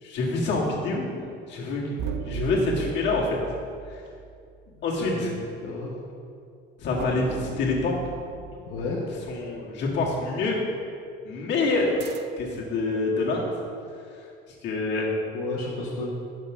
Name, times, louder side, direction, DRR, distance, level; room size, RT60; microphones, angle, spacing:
voice 1, 0.0-1.1 1.5-3.4 3.9-4.0 4.8-5.3 6.8-7.9 9.3-10.6 11.2-12.0 12.4-13.5 14.6-15.1, left 3 dB, 55° left, -3 dB, 1.8 m, -26 dB
sound 1, 2.0-4.8 7.0-9.7 12.0-12.6, right 5 dB, 55° right, 0.6 m, -37 dB
voice 2, 4.7-6.0 8.7-9.0 15.3-16.1, left 2 dB, 80° left, -4 dB, 1.2 m, -32 dB
6.0 x 5.4 x 6.2 m, 2.4 s
cardioid pair, 110°, 21 cm